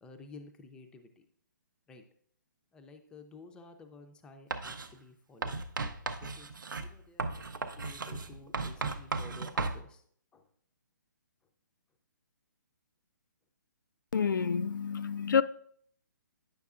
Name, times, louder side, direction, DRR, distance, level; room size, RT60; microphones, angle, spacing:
voice 1, 0.0-1.3 1.9-2.0 2.7-5.6 6.2-6.5 6.8-10.0 10.3-10.5, left 3 dB, 10° left, 0.4 m, -53 dB
Writing, 4.5-4.9 5.4-9.8, right 4 dB, 80° right, 0.6 m, -36 dB
voice 2, 14.1-15.4, left 6 dB, 80° left, 0.4 m, -28 dB
9.4 x 6.4 x 2.4 m
hypercardioid pair, 145°, 10 cm